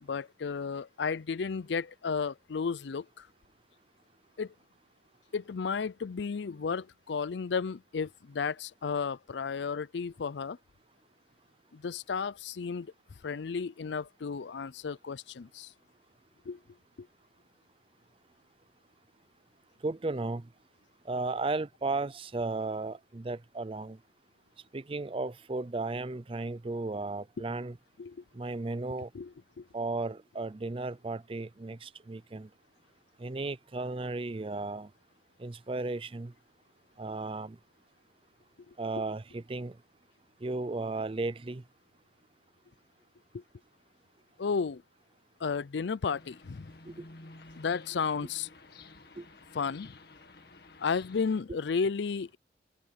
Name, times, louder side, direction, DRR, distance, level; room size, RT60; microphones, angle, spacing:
voice 1, 0.0-3.3 4.4-4.5 5.3-10.6 11.7-12.9 13.2-15.7 16.5-16.6 17.0-17.1 28.0-28.2 29.1-29.7 38.7-38.8 43.3-43.4 44.4-44.8 45.4-46.7 47.6-48.5 49.5-50.0 50.8-52.4, left 5 dB, 75° left, 0.5 m, -33 dB
voice 2, 19.8-20.5 21.1-24.0 24.7-27.8 28.3-29.1 29.7-32.5 33.2-34.9 35.4-36.3 37.0-37.6 38.8-39.8 40.4-41.6 46.9-47.0 49.2-49.3, right 3 dB, 30° right, 0.5 m, -35 dB
sound 1, 46.0-51.4, left 3 dB, 55° left, 1.9 m, -52 dB
head